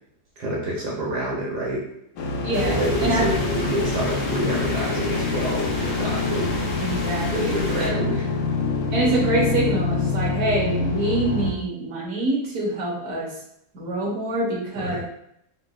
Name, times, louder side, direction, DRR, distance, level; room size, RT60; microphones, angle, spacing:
voice 1, 0.4-1.8 2.6-6.5 7.3-8.2 14.8-15.0, right 1 dB, 80° right, -4 dB, 1.5 m, -27 dB
sound 1, 2.2-11.5, left 3 dB, 90° left, 1.2 m, -26 dB
voice 2, 2.4-3.3 6.8-7.9 8.9-13.3 13.7-15.0, right 1 dB, 60° right, -4 dB, 1.4 m, -25 dB
sound 2, 2.5-7.9, left 1 dB, 60° left, 0.4 m, -32 dB
3.8 x 3.5 x 2.2 m, 0.75 s
omnidirectional pair, 1.7 m